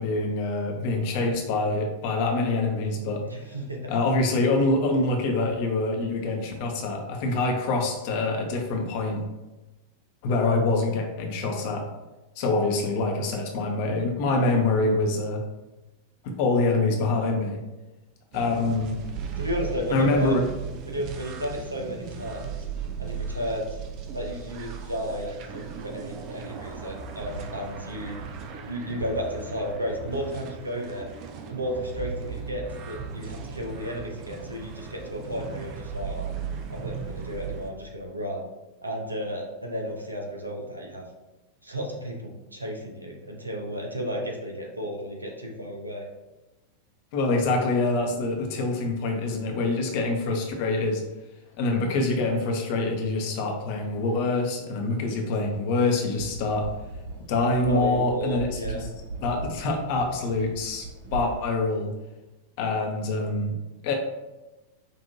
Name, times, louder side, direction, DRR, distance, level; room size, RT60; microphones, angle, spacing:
voice 1, 0.0-3.2 3.9-9.2 10.2-11.8 12.4-15.4 16.2-17.6 18.3-18.9 19.9-20.4 47.1-51.0 51.6-56.7 57.3-58.6 59.2-60.9 61.1-61.9 62.6-63.5 63.8-63.9, left 2 dB, 45° left, 2 dB, 0.8 m, -25 dB
voice 2, 3.2-3.9 19.4-20.4 20.8-22.5 23.0-23.8 24.1-28.2 28.6-31.1 31.5-36.3 36.7-38.4 38.8-41.0 41.6-46.1 57.7-58.9, equal, 85° right, 1 dB, 0.7 m, -33 dB
sound 1, 18.3-37.7, right 6 dB, 40° right, 0.4 m, -37 dB
sound 2, 56.1-61.4, right 3 dB, 60° right, 1.1 m, -38 dB
5.4 x 2.6 x 2.7 m, 1.1 s
figure-of-eight pair, 90°, 0 cm